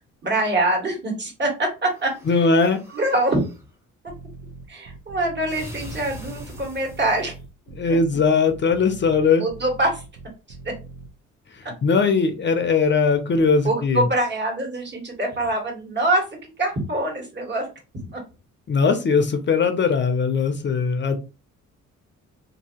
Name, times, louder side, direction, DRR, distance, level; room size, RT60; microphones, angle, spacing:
voice 1, 0.2-2.5 2.9-3.4 4.7-7.3 9.4-10.0 13.6-17.7 18.1-18.2, right 1 dB, 35° right, 1 dB, 1.5 m, -24 dB
sound 1, 1.9-3.6 5.5-7.4, left 1 dB, 10° right, 0.9 m, -42 dB
voice 2, 2.3-2.8 7.8-9.4 11.5-14.0 18.7-21.2, left 4 dB, 40° left, 7 dB, 0.5 m, -20 dB
sound 2, 4.1-11.1, right 4 dB, 70° right, 0.7 m, -41 dB
2.7 x 2.7 x 2.8 m, 0.30 s
cardioid pair, 90°, 30 cm